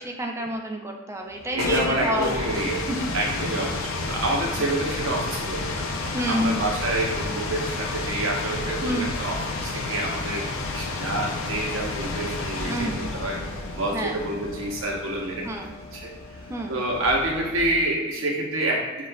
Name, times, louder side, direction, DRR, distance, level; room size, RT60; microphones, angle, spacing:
voice 1, 0.0-2.4 2.9-3.1 6.1-6.7 8.8-9.1 12.6-13.0 13.9-14.2 15.4-15.7 16.5-16.8, right 1 dB, 15° right, 2 dB, 0.4 m, -28 dB
sound 1, 1.3-18.0, left 3 dB, 85° left, 0.5 m, -31 dB
voice 2, 1.5-5.9 6.3-10.4 10.7-13.4 13.7-15.5 15.9-16.1 16.7-18.8, right 1 dB, 80° right, -2 dB, 0.9 m, -28 dB
6.2 x 2.5 x 2.2 m, 1.3 s
head